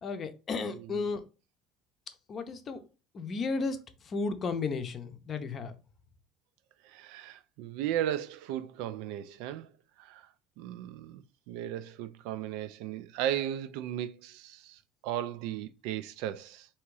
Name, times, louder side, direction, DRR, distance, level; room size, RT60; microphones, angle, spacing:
voice 1, 0.0-1.2 2.3-2.8 3.1-3.8 4.0-5.7, left 4 dB, 30° left, 0.6 m, -33 dB
voice 2, 0.7-1.1 6.8-9.7 10.0-10.3 10.6-16.7, right 11 dB, 70° right, 0.4 m, -36 dB
3.5 x 2.9 x 4.7 m
cardioid pair, 155°, 0 cm